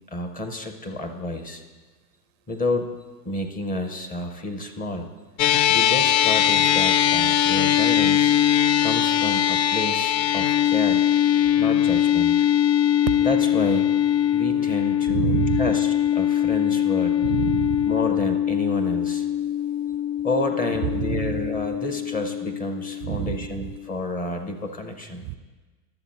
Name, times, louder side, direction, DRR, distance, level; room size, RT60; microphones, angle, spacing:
voice 1, 0.1-1.6 2.5-3.0 3.2-5.1 5.7-8.3 8.8-11.1 11.6-12.4 12.9-13.9 14.3-17.3 17.9-19.3 20.2-25.3, left 2 dB, 15° left, 6 dB, 0.6 m, -30 dB
sound 1, 5.4-23.9, left 10 dB, 80° left, 0.6 m, -21 dB
voice 2, 15.1-15.7 17.2-17.9 21.0-21.5 23.0-23.5 25.2-25.4, right 15 dB, 50° right, 12 dB, 0.5 m, -27 dB
11.5 x 7.1 x 4.1 m, 1.3 s
hypercardioid pair, 110°, 49 cm